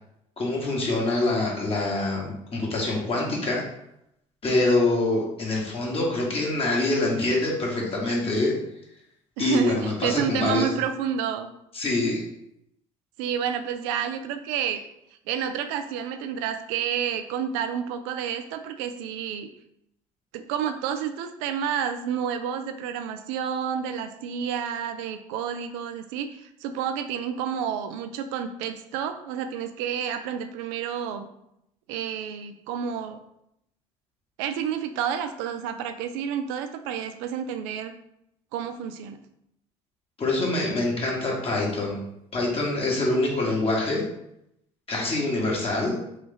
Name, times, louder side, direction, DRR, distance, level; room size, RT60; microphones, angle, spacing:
voice 1, 0.4-3.6 4.4-8.5 9.4-10.7 11.7-12.2 40.2-42.0 42.3-44.0 44.9-46.0, left 2 dB, 40° left, -3 dB, 1.2 m, -25 dB
voice 2, 9.4-11.5 13.2-14.8 15.3-19.5 20.3-31.3 31.9-33.2 34.4-37.9 38.5-39.2, right 8 dB, 80° right, 9 dB, 0.4 m, -30 dB
3.1 x 2.4 x 3.8 m, 0.79 s
hypercardioid pair, 70°, 15 cm